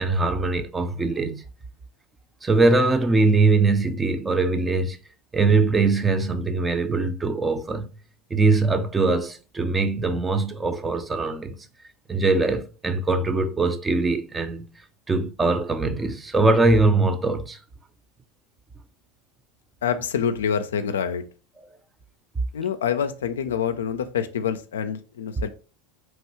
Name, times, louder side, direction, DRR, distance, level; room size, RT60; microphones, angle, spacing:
voice 1, 0.0-1.4 2.4-5.0 5.3-7.9 8.3-11.5 12.1-14.7 15.1-17.6, right 3 dB, 15° right, 0.4 m, -22 dB
voice 2, 19.8-21.2 22.5-25.5, left 7 dB, 90° left, 0.3 m, -26 dB
3.0 x 2.3 x 2.9 m
hypercardioid pair, 95°, 0 cm